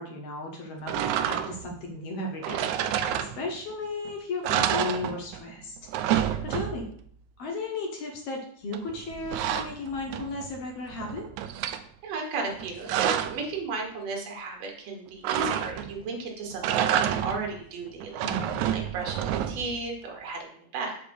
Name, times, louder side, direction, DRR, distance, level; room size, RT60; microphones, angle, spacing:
voice 1, 0.0-5.8 6.4-6.9 7.4-11.3 18.2-18.7, left 2 dB, 65° left, 1 dB, 1.7 m, -35 dB
sound 1, 0.9-1.7 2.4-3.7 4.1-4.2 4.4-5.5 5.8-7.0 8.7-10.5 10.9-11.8 12.5-13.5 15.2-16.0 16.5-17.5 18.0-19.8, right 10 dB, 80° right, 1.7 m, -29 dB
voice 2, 12.0-18.3 18.7-21.0, right 3 dB, 60° right, 1 dB, 2.4 m, -34 dB
5.1 x 5.0 x 6.3 m, 0.62 s
omnidirectional pair, 3.6 m